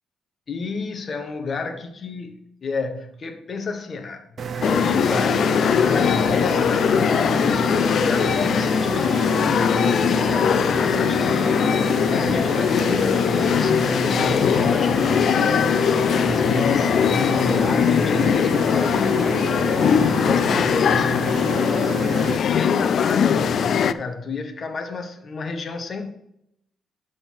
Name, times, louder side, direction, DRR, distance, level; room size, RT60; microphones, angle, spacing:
voice 1, 0.5-4.2 4.5-11.7 12.1-19.4 20.2-21.5 22.5-26.1, left 4 dB, 45° left, 1.4 m, -30 dB
sound 1, 4.4-22.4, right 6 dB, 50° right, 0.9 m, -30 dB
sound 2, 4.6-23.9, left 7 dB, 60° left, 0.4 m, -20 dB
11.5 x 4.0 x 6.0 m
cardioid pair, 105°, 0 cm